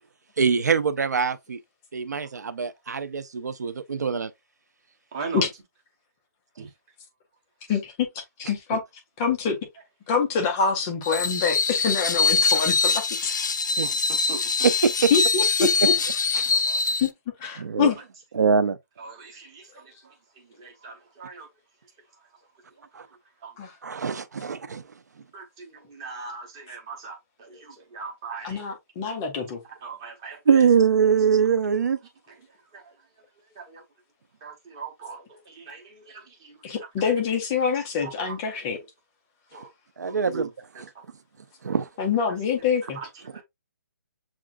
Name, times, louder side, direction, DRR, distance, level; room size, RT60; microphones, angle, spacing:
voice 1, 0.4-1.6 1.9-4.3 6.6-6.7 8.7-8.8 13.8-13.9 14.6-15.1 16.4-16.5 17.6-17.9 18.3-18.8 22.9-23.1 23.8-24.8 30.5-32.0 40.0-40.5 41.6-41.9, right 6 dB, 60° right, 0.6 m, -23 dB
voice 2, 5.1-5.5 6.6-6.7 7.7-7.8 12.4-12.7 13.8-14.7 16.5-16.8 18.0-18.1 19.0-21.5 22.2-22.4 22.7-23.6 25.3-28.6 29.0-29.1 29.6-30.7 32.3-33.8 34.4-37.1 37.7-38.6 39.5-39.7 40.1-40.8 42.3-42.4 42.8-43.4, right 4 dB, 15° right, 0.8 m, -41 dB
voice 3, 8.4-8.8 9.2-9.6 10.1-12.9 13.2-13.3 15.1-15.9 17.0-17.1 17.4-18.0 23.6-23.7 28.4-29.6 36.6-38.8 42.0-43.0, left 6 dB, 10° left, 0.4 m, -25 dB
Screech, 11.0-17.1, left 4 dB, 70° left, 0.6 m, -23 dB
7.2 x 2.4 x 2.4 m
hypercardioid pair, 180°, 10 cm